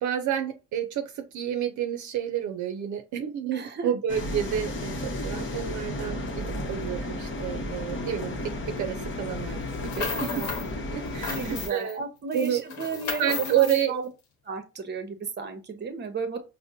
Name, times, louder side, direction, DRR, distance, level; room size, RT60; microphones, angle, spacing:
voice 1, 0.0-10.3 10.9-12.0 12.3-12.6 13.2-14.0, right 10 dB, 75° right, 0.6 m, -29 dB
voice 2, 3.5-3.9 10.1-10.5 11.3-14.1 14.4-16.4, right 4 dB, 35° right, 0.8 m, -34 dB
sound 1, 4.1-11.7, left 1 dB, 40° left, 0.9 m, -33 dB
sound 2, 9.7-10.7 11.0-11.9 12.3-13.9, left 5 dB, 70° left, 0.9 m, -34 dB
4.9 x 2.1 x 2.7 m
cardioid pair, 90°, 30 cm